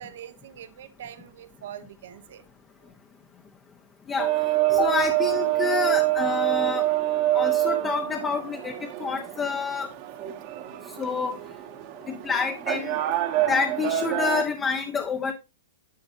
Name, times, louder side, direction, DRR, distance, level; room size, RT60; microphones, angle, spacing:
voice 1, 0.0-2.4 2.8-2.9, right 10 dB, 65° right, 1.2 m, -43 dB
sound 1, 4.2-14.4, right 15 dB, 40° right, 1.3 m, -26 dB
voice 2, 4.7-6.9 7.3-9.9 11.0-11.4 12.1-13.0 13.5-15.3, left 5 dB, 15° left, 0.9 m, -28 dB
10.5 x 7.7 x 2.7 m
hypercardioid pair, 135°, 0 cm